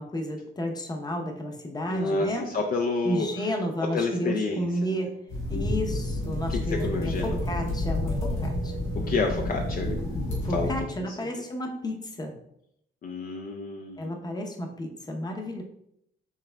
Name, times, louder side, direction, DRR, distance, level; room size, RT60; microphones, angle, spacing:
voice 1, 0.0-2.5 3.0-5.2 5.5-8.8 10.4-12.3 14.0-15.6, equal, 20° left, 3 dB, 0.8 m, -32 dB
voice 2, 1.9-3.3 3.8-4.9 6.5-7.4 9.0-10.2 10.5-10.7 13.0-14.1, left 3 dB, 45° left, 2 dB, 0.5 m, -29 dB
sound 1, 5.3-10.8, left 1 dB, 85° left, 1.6 m, -29 dB
5.6 x 3.5 x 2.3 m, 0.75 s
cardioid pair, 90°, 20 cm